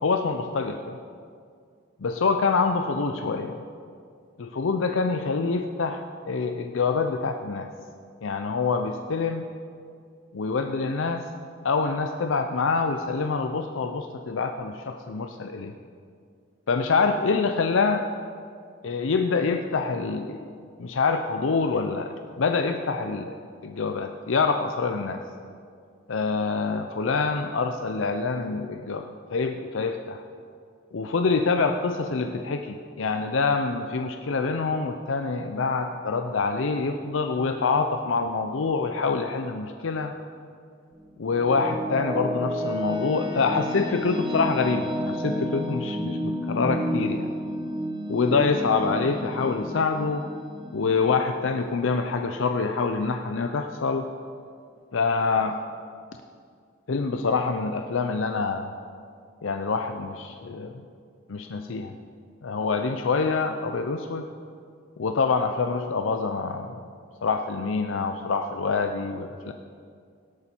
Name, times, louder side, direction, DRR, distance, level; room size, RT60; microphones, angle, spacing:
voice 1, 0.0-1.0 2.0-3.6 4.4-7.7 8.2-9.4 10.3-11.3 11.6-15.7 16.7-18.1 18.8-20.5 20.8-23.4 23.6-25.2 26.1-30.2 30.9-40.1 41.2-47.3 48.1-50.3 50.7-54.1 54.9-55.6 56.9-58.7 59.4-60.9 61.3-62.0 62.4-64.3 65.0-66.8 67.2-69.5, left 4 dB, 80° left, 6 dB, 0.6 m, -26 dB
sound 1, 40.9-52.2, equal, 20° right, 1.3 m, -31 dB
17.5 x 8.4 x 4.5 m, 2.2 s
head